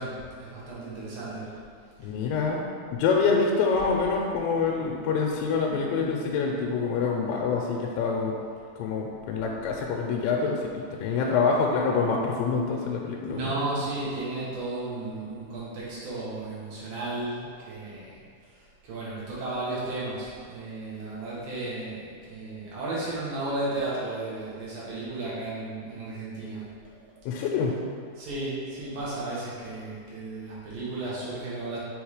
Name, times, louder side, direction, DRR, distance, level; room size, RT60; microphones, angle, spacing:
voice 1, 0.0-1.5 11.1-11.2 13.3-18.2 18.8-26.7 28.2-31.8, right 2 dB, 60° right, -8 dB, 3.0 m, -34 dB
voice 2, 2.0-8.3 8.8-13.6 27.3-27.7, left 5 dB, 90° left, -1 dB, 2.8 m, -26 dB
7.1 x 3.5 x 4.8 m, 2.2 s
omnidirectional pair, 5.0 m